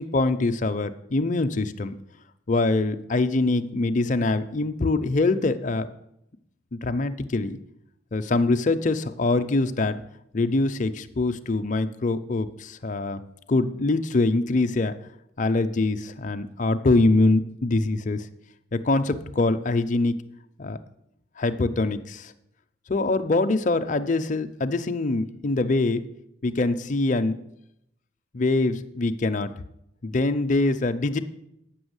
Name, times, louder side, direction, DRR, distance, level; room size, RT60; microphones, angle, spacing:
voice 1, 0.0-1.9 2.5-5.9 6.7-7.6 8.1-10.0 10.3-13.2 13.5-14.9 15.4-18.3 18.7-20.2 20.6-20.8 21.4-22.3 22.9-26.0 26.4-27.4 28.3-29.5 30.0-31.2, left 2 dB, 40° left, 9 dB, 0.5 m, -24 dB
8.4 x 6.2 x 8.0 m, 0.81 s
head